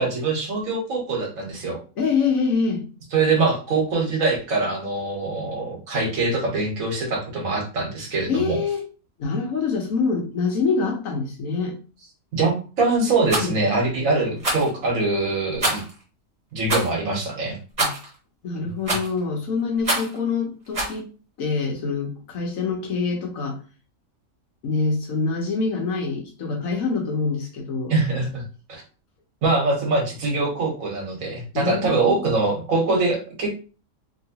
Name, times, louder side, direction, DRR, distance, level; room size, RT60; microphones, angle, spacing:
voice 1, 0.0-1.8 3.1-8.6 12.3-15.8 16.5-17.6 18.6-18.7 27.9-28.4 28.7-28.8 29.4-33.6, right 3 dB, 80° right, 0 dB, 1.5 m, -23 dB
voice 2, 2.0-2.8 8.3-8.9 9.2-11.8 13.3-13.6 17.8-17.9 18.4-21.1 21.4-23.6 24.6-27.9 31.5-32.3, left 4 dB, 80° left, 1 dB, 1.3 m, -25 dB
Rattle, 13.2-13.5 14.4-14.7 15.6-15.9 16.7-16.9 17.8-18.1 18.9-19.2 19.8-20.2 20.7-21.0, right 2 dB, 30° right, 1.2 m, -25 dB
3.0 x 2.9 x 2.8 m, 0.36 s
omnidirectional pair, 1.4 m